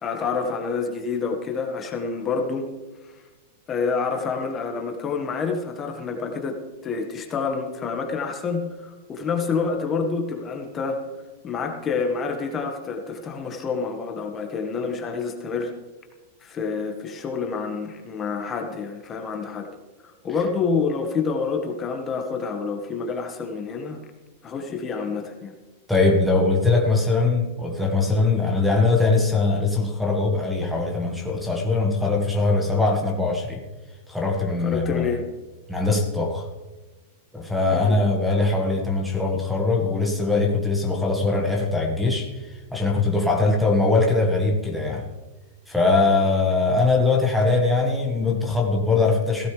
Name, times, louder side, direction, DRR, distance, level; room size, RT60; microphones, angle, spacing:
voice 1, 0.0-2.7 3.7-6.6 6.8-11.0 11.4-15.7 16.4-19.7 20.0-24.0 24.4-25.5 34.6-35.2 37.7-38.0 39.8-39.9, left 5 dB, 20° left, 3 dB, 1.5 m, -28 dB
voice 2, 25.9-33.6 34.1-35.1 35.7-36.5 37.3-45.1 45.7-49.5, left 3 dB, ahead, -2 dB, 1.5 m, -21 dB
16.0 x 14.0 x 3.3 m, 1.2 s
supercardioid pair, 145°, 0 cm